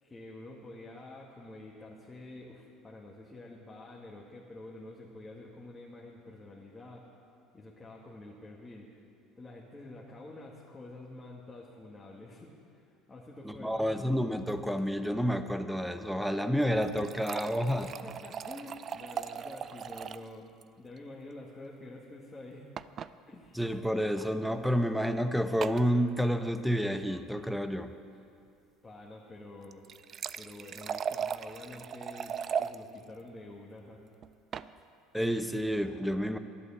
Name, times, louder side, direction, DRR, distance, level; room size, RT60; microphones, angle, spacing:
voice 1, 0.0-7.0 7.5-9.0 9.4-13.9 17.8-20.5 20.8-22.7 23.3-23.6 28.1-28.2 28.8-29.9 30.4-34.0, left 2 dB, 20° left, -3 dB, 1.8 m, -48 dB
voice 2, 13.4-17.9 23.5-27.9 35.1-36.4, equal, ahead, 9 dB, 0.8 m, -29 dB
sound 1, 16.6-20.3 20.6-20.7 21.0-21.1 22.8-23.1 24.1-24.3 25.6-25.9 29.6-32.8 34.2-34.7, right 7 dB, 45° right, 0.4 m, -38 dB
11.5 x 11.0 x 7.2 m, 2.5 s
hypercardioid pair, 80°, 0 cm